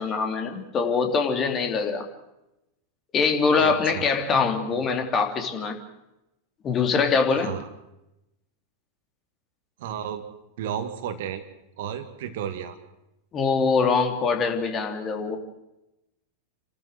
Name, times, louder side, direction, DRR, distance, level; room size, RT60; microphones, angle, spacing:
voice 1, 0.0-2.1 3.1-5.8 6.6-7.5 13.3-15.4, left 5 dB, 25° left, 4 dB, 3.1 m, -23 dB
voice 2, 3.6-4.1 7.3-7.7 9.8-10.2 10.6-11.4 11.8-12.8, right 9 dB, 55° right, 9 dB, 2.0 m, -33 dB
29.5 x 13.0 x 7.8 m, 0.91 s
figure-of-eight pair, 90°, 0 cm